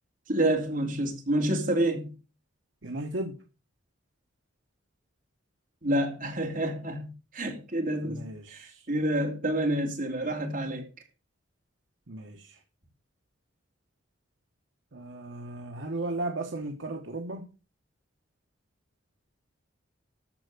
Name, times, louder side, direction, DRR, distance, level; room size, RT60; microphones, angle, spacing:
voice 1, 0.3-2.1 5.8-10.8, right 1 dB, 45° right, 2.8 m, -28 dB
voice 2, 2.8-3.4 8.0-8.9 12.1-12.6 14.9-17.5, right 2 dB, 70° right, 1.2 m, -35 dB
13.5 x 4.6 x 6.6 m
head